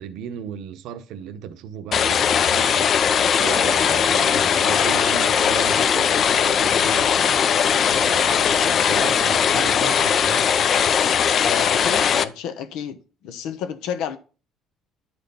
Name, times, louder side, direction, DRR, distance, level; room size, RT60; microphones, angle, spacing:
voice 1, 0.0-7.4 7.9-10.5, right 8 dB, 75° right, 0.8 m, -35 dB
sound 1, 1.9-12.2, left 7 dB, 40° left, 0.5 m, -19 dB
voice 2, 11.4-13.0 13.2-14.2, left 8 dB, 90° left, 1.1 m, -31 dB
11.0 x 4.4 x 5.4 m
cardioid pair, 175°, 0 cm